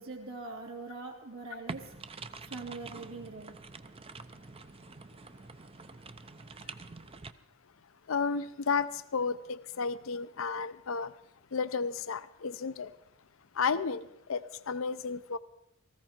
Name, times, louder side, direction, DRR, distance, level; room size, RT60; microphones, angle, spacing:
voice 1, 0.0-1.9 2.5-3.6, right 3 dB, 80° right, 1 dB, 3.0 m, -42 dB
sound 1, 1.7-7.3, right 4 dB, 30° right, 0.6 m, -46 dB
voice 2, 8.1-11.1 11.5-12.9 13.6-15.4, left 5 dB, 70° left, 14 dB, 0.6 m, -32 dB
19.0 x 15.0 x 4.4 m, 0.81 s
head